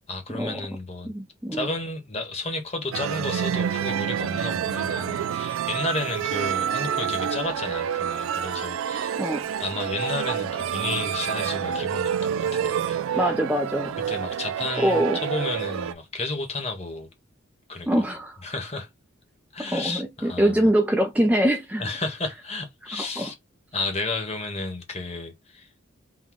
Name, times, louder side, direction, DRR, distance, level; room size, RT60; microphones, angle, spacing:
voice 1, 0.1-1.1 1.5-9.2 9.6-13.2 14.1-17.1 17.7-18.0 18.4-18.9 19.5-20.7 21.8-23.3 23.7-25.7, left 2 dB, 30° left, 1.0 m, -32 dB
voice 2, 1.0-1.7 9.2-9.5 13.1-14.0 14.8-15.2 17.9-18.4 19.7-21.8 23.0-23.3, right 1 dB, 5° right, 0.4 m, -23 dB
sound 1, 2.9-15.9, right 8 dB, 80° right, 0.3 m, -28 dB
3.9 x 2.2 x 4.5 m
head